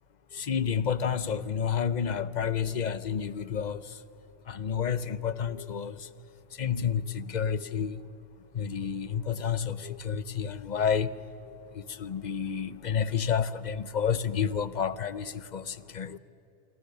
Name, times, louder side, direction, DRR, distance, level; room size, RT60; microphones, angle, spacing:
voice 1, 0.3-3.8 4.5-6.1 6.6-8.0 8.5-11.1 11.5-16.2, left 7 dB, 45° left, 0.8 m, -30 dB
27.0 x 25.0 x 6.7 m
omnidirectional pair, 1.2 m